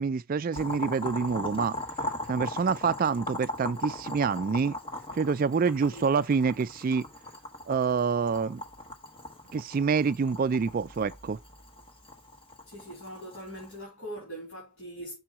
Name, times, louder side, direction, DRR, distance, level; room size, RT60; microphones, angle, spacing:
voice 1, 0.0-1.8 2.3-4.7 5.1-7.0 7.7-8.6 9.5-11.4, right 5 dB, 40° right, 0.3 m, -27 dB
Boiling, 0.5-13.8, left 1 dB, 25° left, 1.1 m, -39 dB
voice 2, 12.7-15.2, equal, 60° left, 3.1 m, -41 dB
6.2 x 4.4 x 4.7 m
head